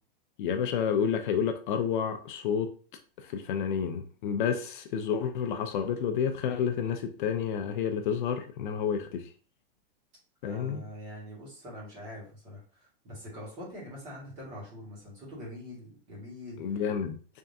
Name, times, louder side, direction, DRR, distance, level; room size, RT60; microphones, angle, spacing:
voice 1, 0.4-2.7 3.3-9.2 10.4-10.8 16.6-17.2, left 7 dB, 55° left, 6 dB, 0.6 m, -30 dB
voice 2, 10.4-16.8, equal, 25° right, -5 dB, 1.9 m, -44 dB
3.6 x 3.3 x 2.7 m, 0.39 s
supercardioid pair, 170°, 29 cm